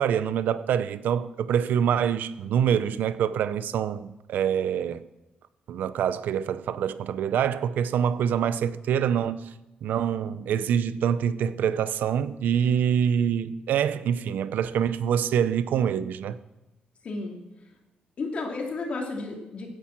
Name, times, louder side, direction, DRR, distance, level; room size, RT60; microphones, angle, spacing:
voice 1, 0.0-5.0 5.7-9.5 9.8-16.4, right 8 dB, 80° right, 0.6 m, -25 dB
voice 2, 17.0-17.4 18.2-19.7, left 3 dB, 40° left, 2.9 m, -32 dB
16.0 x 10.0 x 6.0 m
wide cardioid pair, 170°, 3 cm